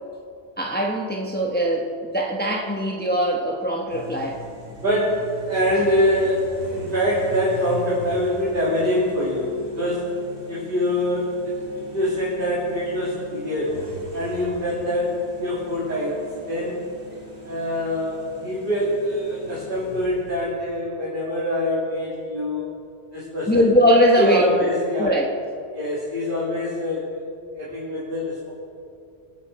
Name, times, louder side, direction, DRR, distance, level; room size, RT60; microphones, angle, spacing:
voice 1, 0.6-4.4 23.5-24.7 25.0-25.3, equal, 10° left, -1 dB, 1.2 m, -21 dB
sound 1, 3.9-20.7, right 1 dB, 70° right, 3.0 m, -41 dB
voice 2, 4.8-10.1 10.5-13.8 14.1-16.8 17.4-22.6 23.1-23.7 24.2-25.2 25.7-27.2 27.6-28.5, left 1 dB, 50° right, -9 dB, 3.5 m, -24 dB
27.0 x 9.4 x 4.3 m, 2.4 s
omnidirectional pair, 1.2 m